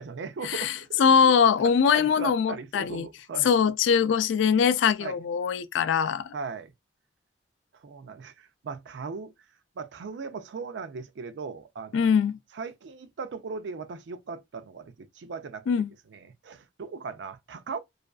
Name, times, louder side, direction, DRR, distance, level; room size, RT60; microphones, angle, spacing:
voice 1, 0.0-1.3 1.6-3.5 5.0-5.2 6.3-6.7 7.7-9.3 9.8-12.1 12.5-15.6 16.1-17.8, right 5 dB, 70° right, 0.4 m, -38 dB
voice 2, 1.0-3.1 3.4-6.3 11.9-12.4 15.7-15.9, left 6 dB, 85° left, 0.3 m, -22 dB
2.5 x 2.2 x 2.2 m
head